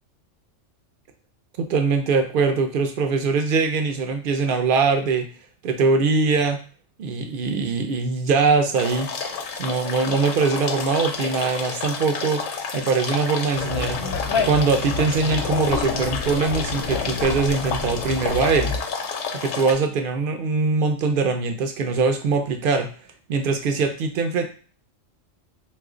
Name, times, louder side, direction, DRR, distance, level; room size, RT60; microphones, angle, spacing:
voice 1, 1.6-5.3 5.6-6.6 7.0-9.1 9.6-12.4 12.7-14.0 14.4-18.8 19.3-22.9 23.3-24.4, right 4 dB, 65° right, 6 dB, 0.5 m, -22 dB
sound 1, 8.8-19.7, left 5 dB, 80° left, 1.0 m, -30 dB
Conversation, 13.5-18.8, left 4 dB, 65° left, 0.7 m, -29 dB
3.0 x 2.4 x 3.7 m, 0.40 s
omnidirectional pair, 1.3 m